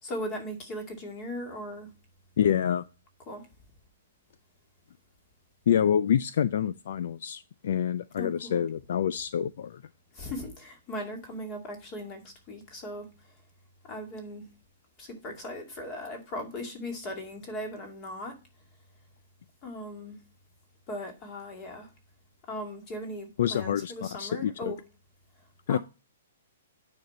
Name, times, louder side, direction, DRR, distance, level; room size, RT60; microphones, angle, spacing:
voice 1, 0.0-1.9 3.3-3.5 8.2-8.6 10.1-13.1 13.8-14.4 15.0-18.4 19.6-20.2 20.9-21.9 22.5-24.8 25.7-25.8, left 1 dB, 20° left, 2.2 m, -38 dB
voice 2, 2.4-2.9 5.7-9.8 23.4-24.7 25.7-25.8, left 9 dB, 50° left, 0.4 m, -27 dB
9.4 x 5.1 x 4.2 m
hypercardioid pair, 175°, 0 cm